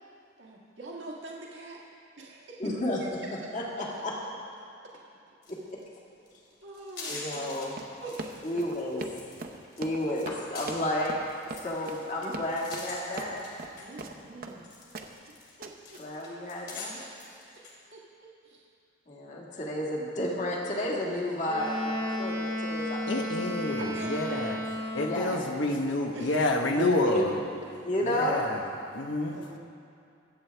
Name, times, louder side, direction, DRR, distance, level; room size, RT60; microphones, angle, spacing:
voice 1, 0.4-1.8 2.2-2.6 4.9-5.0 6.6-7.2 8.0-8.4 13.8-14.7 15.6-15.7 17.5-17.7 17.9-18.0 18.4-18.6 23.8-25.7 26.1-26.4 26.7-26.8 29.3-29.6, right 2 dB, 85° right, -3 dB, 1.6 m, -43 dB
voice 2, 2.6-4.1 5.5-5.8 7.1-7.8 8.4-9.1 9.8-11.2 11.6-13.4 15.9-17.1 19.1-23.3 25.0-25.4 26.7-28.5, left 1 dB, 45° left, -3 dB, 1.9 m, -31 dB
sound 1, 5.4-5.5 5.8-6.0 6.3-7.6 8.0-9.4 9.7-14.0 14.4-17.8, left 3 dB, 60° left, 2.7 m, -44 dB
Run, 7.7-14.6 14.9-15.3 15.6-16.0, right 3 dB, 50° right, 0.8 m, -41 dB
Wind instrument woodwind instrument, 21.4-25.4, left 1 dB, 25° left, 1.7 m, -33 dB
voice 3, 23.1-24.6 24.9-27.3 28.2-28.5 28.9-29.4, left 2 dB, 85° left, 3 dB, 1.1 m, -28 dB
23.5 x 8.0 x 3.4 m, 2.5 s
head